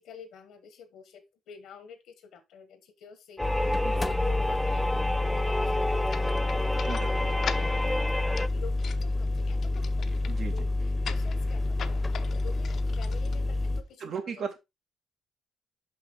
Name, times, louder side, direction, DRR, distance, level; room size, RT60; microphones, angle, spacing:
voice 1, 0.0-14.5, left 6 dB, 85° left, 1.2 m, -49 dB
sound 1, 3.4-13.8, left 2 dB, 25° left, 0.9 m, -29 dB
sound 2, 3.4-8.5, left 1 dB, 5° left, 0.5 m, -30 dB
sound 3, 6.1-13.9, left 7 dB, 60° left, 0.7 m, -42 dB
voice 2, 6.8-7.4 10.3-10.7 14.0-14.6, right 6 dB, 60° right, 1.9 m, -37 dB
5.7 x 5.5 x 3.7 m
cardioid pair, 90°, 0 cm